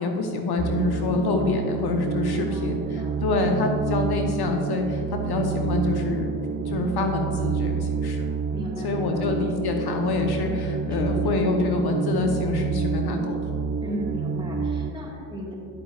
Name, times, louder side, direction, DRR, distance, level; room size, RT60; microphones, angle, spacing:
voice 1, 0.0-6.3 6.7-8.2 8.8-13.5, left 3 dB, 55° left, 3 dB, 0.9 m, -26 dB
sound 1, 0.6-14.9, right 5 dB, 30° right, 0.3 m, -28 dB
voice 2, 2.3-3.6 8.5-9.3 10.9-11.6 13.8-15.5, equal, 10° right, -3 dB, 1.7 m, -37 dB
9.7 x 7.7 x 2.4 m, 2.5 s
supercardioid pair, 75°, 45 cm